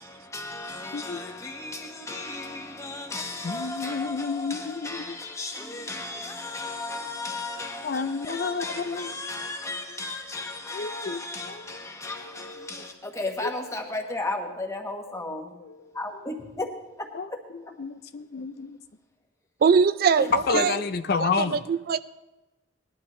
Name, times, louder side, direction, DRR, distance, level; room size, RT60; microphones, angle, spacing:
voice 1, 0.0-15.5 15.9-17.4 20.2-20.7, left 2 dB, 15° left, 1.3 m, -35 dB
voice 2, 3.4-5.2 7.8-9.3 10.7-11.6 12.3-12.8 13.4-13.5 17.1-17.3 17.8-18.8 20.5-21.6, left 4 dB, 55° left, 0.5 m, -30 dB
voice 3, 19.6-20.7 21.2-22.0, right 6 dB, 50° right, 0.3 m, -22 dB
19.0 x 11.5 x 3.2 m
head